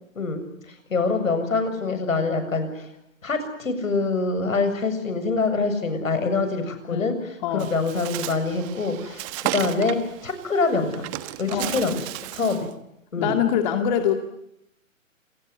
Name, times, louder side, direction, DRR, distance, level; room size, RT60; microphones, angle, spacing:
voice 1, 0.2-2.9 3.2-11.1 11.4-12.0 12.3-12.7 13.1-13.4, left 3 dB, 75° left, 9 dB, 7.4 m, -25 dB
voice 2, 7.4-7.7 11.5-11.7 13.2-14.1, left 9 dB, 35° left, 6 dB, 2.3 m, -23 dB
Bird, 7.6-12.7, right 16 dB, 25° right, 1.4 m, -34 dB
28.0 x 20.0 x 9.6 m, 0.81 s
hypercardioid pair, 140°, 40 cm